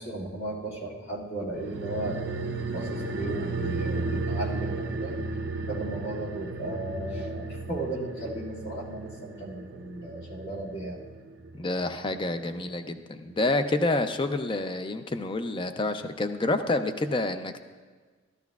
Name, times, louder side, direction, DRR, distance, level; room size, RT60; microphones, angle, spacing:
voice 1, 0.0-2.2 2.7-5.1 5.6-11.0, right 2 dB, 55° left, -5 dB, 2.1 m, -35 dB
sound 1, 1.5-12.4 12.7-12.8, right 3 dB, 65° right, 0.7 m, -34 dB
voice 2, 11.5-17.6, left 2 dB, 25° left, 8 dB, 0.5 m, -28 dB
14.0 x 12.5 x 2.4 m, 1.5 s
head